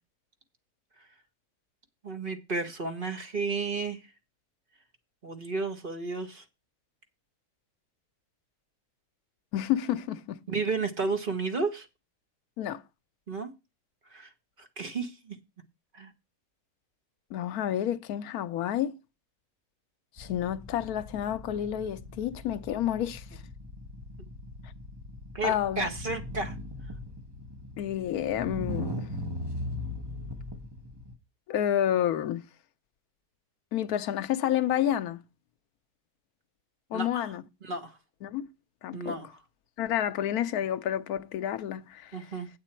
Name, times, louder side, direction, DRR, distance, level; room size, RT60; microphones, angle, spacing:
voice 1, 2.0-4.0 5.2-6.4 10.5-11.9 13.3-13.5 14.1-14.3 14.6-15.4 15.9-16.1 25.3-26.5 36.9-37.3 37.6-38.0 38.9-39.3 42.1-42.5, right 4 dB, 35° right, 1.3 m, -32 dB
voice 2, 9.5-10.4 12.6-12.8 17.3-19.0 20.2-23.2 25.4-25.9 27.8-29.1 31.5-32.4 33.7-35.2 36.9-37.4 38.2-38.5 38.8-39.2 39.8-42.1, left 11 dB, 70° left, 1.1 m, -29 dB
sound 1, 20.2-31.1, left 1 dB, 20° right, 0.9 m, -39 dB
8.9 x 8.2 x 4.4 m
omnidirectional pair, 1.7 m